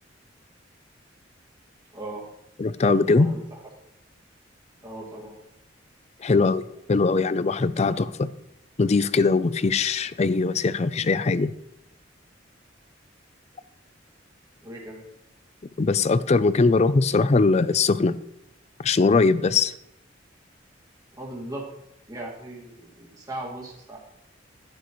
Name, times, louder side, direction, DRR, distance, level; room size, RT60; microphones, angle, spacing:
voice 1, 1.9-2.3 3.2-3.7 4.8-5.3 14.6-15.0 21.1-21.7 22.1-24.0, right 1 dB, 20° right, -3 dB, 2.1 m, -38 dB
voice 2, 2.6-3.3 6.2-8.3 8.8-11.5 15.8-18.2 18.8-19.7, left 4 dB, 35° left, 15 dB, 0.4 m, -21 dB
11.5 x 11.5 x 3.1 m, 0.85 s
head